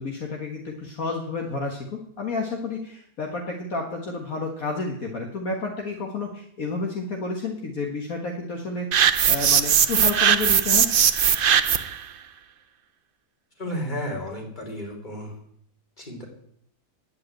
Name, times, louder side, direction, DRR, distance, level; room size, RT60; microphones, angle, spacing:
voice 1, 0.0-10.9, left 3 dB, 60° left, 1 dB, 2.0 m, -30 dB
sound 1, 8.9-12.0, right 8 dB, 65° right, 0.5 m, -19 dB
voice 2, 13.6-15.4 16.0-16.3, equal, 25° left, 0 dB, 3.6 m, -32 dB
10.5 x 8.3 x 8.9 m, 0.68 s
omnidirectional pair, 1.7 m